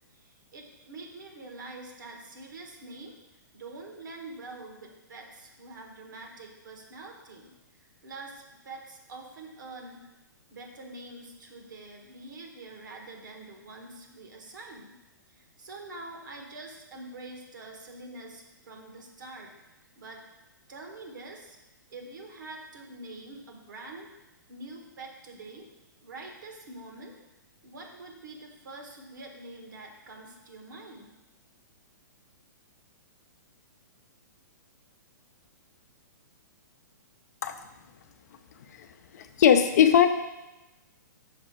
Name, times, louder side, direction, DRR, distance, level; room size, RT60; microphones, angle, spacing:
voice 1, 0.1-3.1 3.5-10.1 10.5-15.0 15.3-19.5 20.0-20.2 20.7-21.6 21.9-24.1 24.5-25.7 26.0-27.2 27.6-31.1, right 2 dB, 70° right, 1 dB, 1.5 m, -45 dB
voice 2, 39.1-40.1, left 9 dB, 55° left, 8 dB, 0.6 m, -19 dB
5.8 x 4.5 x 4.7 m, 1.0 s
hypercardioid pair, 120°, 11 cm